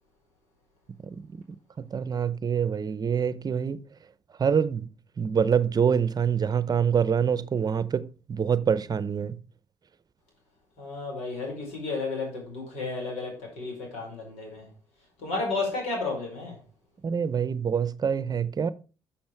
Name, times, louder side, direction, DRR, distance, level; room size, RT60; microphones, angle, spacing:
voice 1, 1.8-3.8 4.4-4.9 5.2-9.4 17.0-18.7, right 7 dB, 40° right, 0.7 m, -25 dB
voice 2, 10.8-14.6 15.2-16.6, left 3 dB, 85° left, 4.7 m, -32 dB
7.4 x 7.1 x 4.6 m
supercardioid pair, 70°, 11 cm